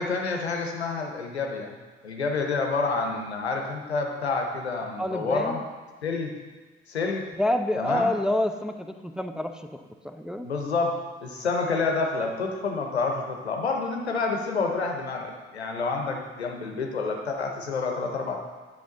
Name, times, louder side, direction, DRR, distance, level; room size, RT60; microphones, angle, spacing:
voice 1, 0.0-1.7 2.0-5.6 6.0-6.3 6.9-7.2 7.8-8.1 10.4-11.0 11.2-18.3, left 4 dB, 90° left, 2 dB, 0.8 m, -28 dB
voice 2, 5.0-5.6 7.4-10.5, left 1 dB, ahead, 6 dB, 0.6 m, -28 dB
9.3 x 5.6 x 3.8 m, 1.3 s
figure-of-eight pair, 45°, 32 cm